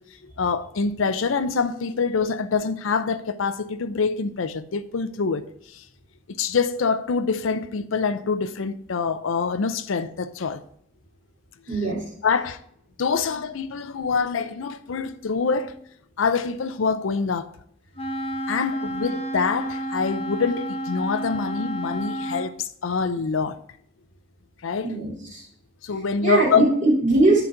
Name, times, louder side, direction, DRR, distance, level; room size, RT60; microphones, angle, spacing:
voice 1, 0.2-5.5 5.7-5.8 6.4-10.6 12.2-12.6 13.0-15.8 16.2-17.5 18.5-23.6 24.6-24.9 25.8-26.7, left 5 dB, 90° left, 0.5 m, -25 dB
voice 2, 11.7-12.0 24.8-25.4 26.2-27.4, right 2 dB, 40° right, 3.2 m, -20 dB
Wind instrument woodwind instrument, 18.0-22.5, right 1 dB, 30° left, 0.8 m, -30 dB
9.4 x 4.1 x 4.4 m
head